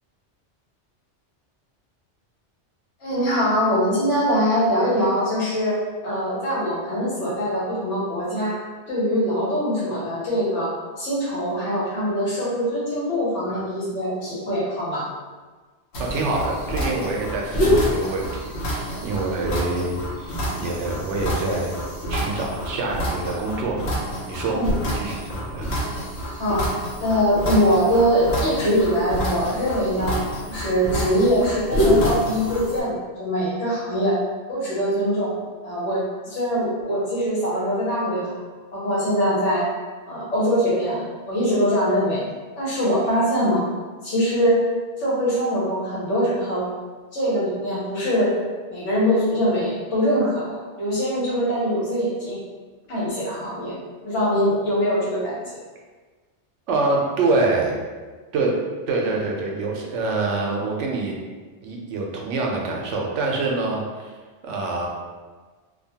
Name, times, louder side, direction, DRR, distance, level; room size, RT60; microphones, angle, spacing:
voice 1, 3.0-5.8 6.0-8.6 8.9-15.0 24.5-24.7 26.4-26.7 27.0-30.2 30.5-34.2 34.5-35.3 35.6-38.3 38.7-39.7 40.1-42.2 42.6-43.6 44.0-44.6 45.0-46.7 47.1-48.3 48.7-52.4 52.9-53.7 54.0-55.4, equal, 85° left, -7 dB, 1.3 m, -22 dB
sound 1, 15.9-32.8, equal, 70° left, 1.0 m, -27 dB
voice 2, 16.0-21.8 22.1-23.8 24.3-25.8 56.7-57.7 58.3-58.6 58.9-61.1 61.6-64.1 64.4-64.9, right 3 dB, 90° right, -1 dB, 0.9 m, -26 dB
2.6 x 2.2 x 2.7 m, 1.4 s
omnidirectional pair, 1.2 m